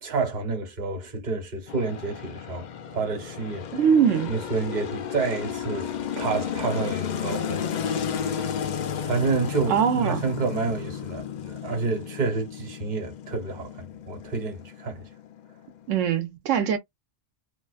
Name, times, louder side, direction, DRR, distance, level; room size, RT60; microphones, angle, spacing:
voice 1, 0.0-2.7 2.9-3.7 4.3-7.6 9.0-15.1, right 4 dB, 40° right, 1.0 m, -29 dB
sound 1, 1.7-15.9, left 7 dB, 65° left, 0.4 m, -33 dB
voice 2, 3.7-4.3 9.7-10.2 15.9-16.8, right 8 dB, 85° right, 1.0 m, -22 dB
2.4 x 2.4 x 2.3 m
omnidirectional pair, 1.3 m